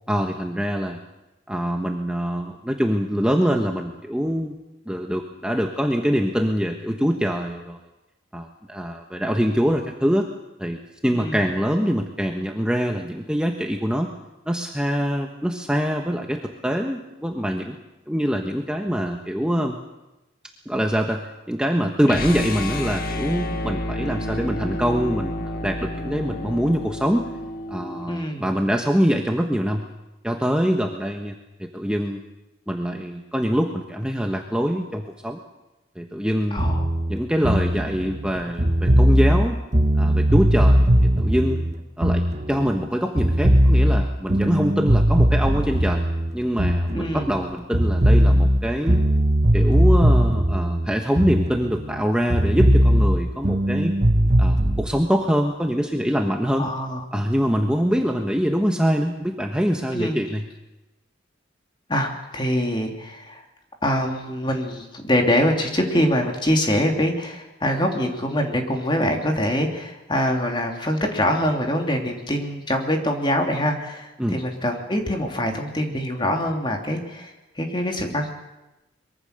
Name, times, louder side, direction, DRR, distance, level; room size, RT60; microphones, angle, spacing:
voice 1, 0.1-1.0 1.5-4.6 4.9-7.8 8.3-10.3 10.6-14.1 14.5-17.8 18.1-19.8 20.7-21.2 21.5-27.3 27.7-29.9 30.2-32.2 32.7-35.4 36.0-36.7 37.1-39.6 40.0-41.6 42.0-42.2 42.5-46.0 46.3-49.0 49.5-54.0 54.4-56.7 57.1-60.4 74.2-74.4, equal, 5° right, 2 dB, 1.3 m, -24 dB
voice 2, 11.1-11.5 28.1-28.5 36.5-36.9 46.9-47.3 56.6-57.0 59.9-60.2 61.9-63.4 63.8-78.3, equal, 25° left, 3 dB, 3.0 m, -24 dB
sound 1, 22.0-28.1, left 1 dB, 50° left, 1.9 m, -30 dB
sound 2, 36.6-42.9 43.2-47.5 47.7-52.0 52.3-54.9, equal, 40° right, 1.4 m, -19 dB
24.0 x 22.5 x 6.8 m, 0.99 s
head